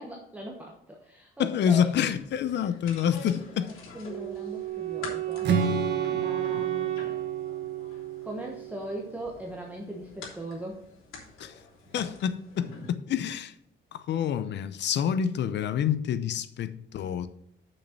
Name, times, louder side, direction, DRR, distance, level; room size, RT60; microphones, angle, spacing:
voice 1, 0.0-1.9 3.1-5.5 6.2-7.0 8.2-10.8, right 1 dB, 5° right, 1.2 m, -39 dB
voice 2, 1.4-3.7 11.4-11.5 11.9-13.5 13.9-17.3, left 8 dB, 60° left, 0.7 m, -27 dB
sound 1, 1.9-12.9, left 4 dB, 90° left, 3.2 m, -47 dB
Wind instrument woodwind instrument, 4.1-9.1, right 14 dB, 80° right, 2.0 m, -32 dB
Strum, 5.4-9.5, right 4 dB, 60° right, 1.5 m, -33 dB
6.6 x 6.5 x 5.9 m
cardioid pair, 160°, 21 cm